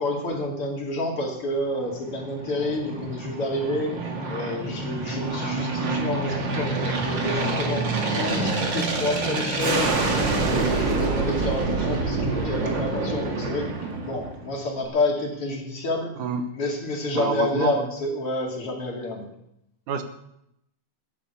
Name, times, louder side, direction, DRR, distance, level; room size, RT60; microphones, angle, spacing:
voice 1, 0.0-3.9 4.3-13.7 14.0-16.1 16.5-19.3, left 2 dB, 45° left, 0 dB, 3.2 m, -29 dB
Aircraft, 1.8-14.6, right 3 dB, 40° right, 2.3 m, -27 dB
voice 2, 17.1-17.9 19.9-20.0, right 6 dB, 75° right, 8 dB, 2.7 m, -27 dB
13.5 x 10.5 x 6.9 m, 0.78 s
omnidirectional pair, 3.6 m